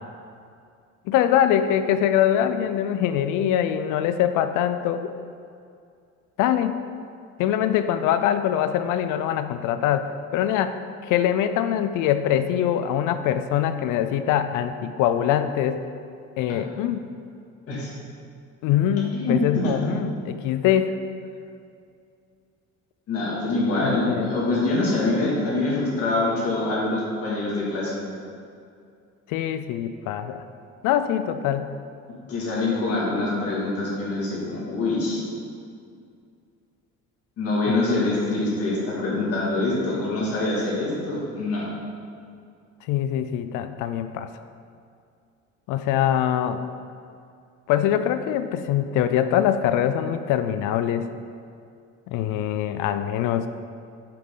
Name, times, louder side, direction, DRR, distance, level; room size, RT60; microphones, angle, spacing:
voice 1, 1.1-5.1 6.4-6.8 7.4-10.8 11.0-15.8 16.4-17.1 18.6-20.9 23.8-24.3 29.3-30.4 30.8-31.7 37.7-37.8 42.9-44.3 45.7-46.6 47.7-51.1 52.1-53.5, left 10 dB, 85° left, 10 dB, 0.5 m, -23 dB
voice 2, 19.1-19.7 23.1-27.9 32.3-35.2 37.4-41.7, left 2 dB, 50° left, -6 dB, 2.3 m, -25 dB
8.6 x 7.6 x 3.8 m, 2.4 s
cardioid pair, 155°, 30 cm